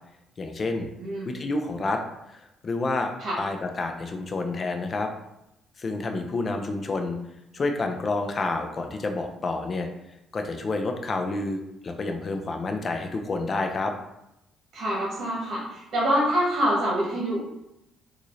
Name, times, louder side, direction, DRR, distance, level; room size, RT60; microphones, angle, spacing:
voice 1, 0.4-0.9 1.3-2.0 2.3-3.1 3.4-5.1 5.8-7.2 7.5-9.9 10.3-13.9, left 3 dB, 40° left, 5 dB, 0.5 m, -29 dB
voice 2, 0.9-1.3 3.2-3.4 12.3-12.6 14.7-17.4, equal, 55° right, -4 dB, 1.2 m, -26 dB
3.8 x 2.5 x 3.1 m, 0.86 s
supercardioid pair, 70°, 0 cm